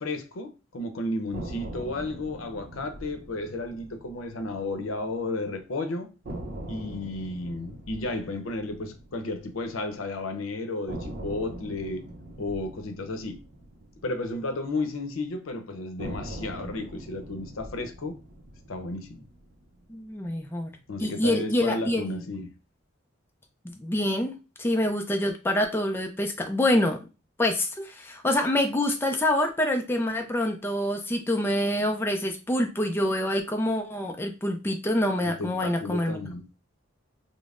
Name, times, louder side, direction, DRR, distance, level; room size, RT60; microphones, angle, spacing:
voice 1, 0.0-6.1 6.7-12.0 12.4-13.4 14.0-18.1 18.7-19.2 20.9-22.5 35.2-36.6, left 2 dB, 85° left, 0.6 m, -33 dB
sound 1, 1.3-5.4 5.7-5.8 6.2-10.3 10.9-15.2 16.0-20.4, right 1 dB, 50° right, 0.6 m, -42 dB
voice 2, 19.9-20.7 21.0-22.2 23.6-27.0 27.4-36.2, left 1 dB, 10° left, 0.3 m, -26 dB
5.2 x 2.0 x 2.4 m
head